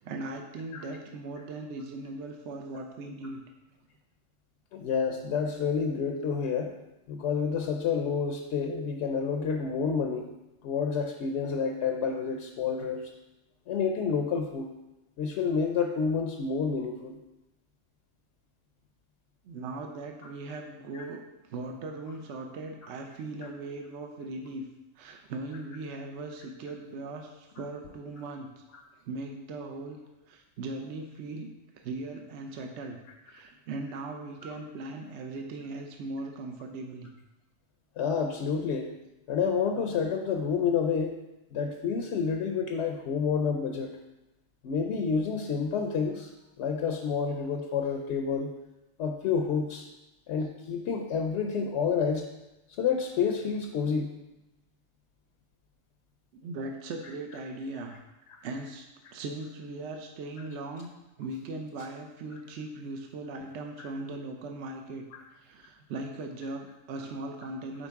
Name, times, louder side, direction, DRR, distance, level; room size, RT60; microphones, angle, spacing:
voice 1, 0.0-3.4 19.4-24.7 25.0-28.6 29.0-30.0 30.3-33.0 33.3-37.1 50.4-50.5 56.3-58.0 58.4-60.9 61.2-67.9, right 2 dB, 65° right, 4 dB, 0.9 m, -39 dB
voice 2, 4.7-6.8 7.1-10.3 10.6-13.0 13.7-14.7 15.2-17.1 20.9-21.0 38.0-38.9 39.3-41.2 41.5-44.0 44.6-46.3 46.6-48.5 49.0-49.9 50.3-52.3 52.8-54.1 58.3-58.4 63.8-63.9 65.1-65.2, left 6 dB, 65° left, 3 dB, 0.8 m, -29 dB
9.0 x 4.3 x 3.5 m, 0.98 s
omnidirectional pair, 1.4 m